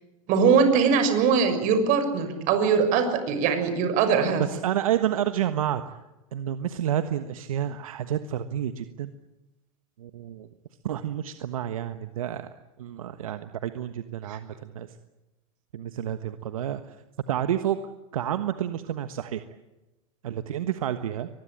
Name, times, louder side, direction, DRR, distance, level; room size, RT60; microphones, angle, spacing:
voice 1, 0.3-4.4 14.3-14.4, right 6 dB, 50° right, 8 dB, 6.5 m, -21 dB
voice 2, 4.4-6.0 6.3-9.1 10.0-10.5 10.8-12.5 12.8-14.9 15.7-17.0 17.3-17.8 18.1-19.4 20.2-21.3, right 10 dB, 80° right, 10 dB, 1.4 m, -29 dB
24.0 x 21.0 x 8.8 m, 1.0 s
hypercardioid pair, 105°, 18 cm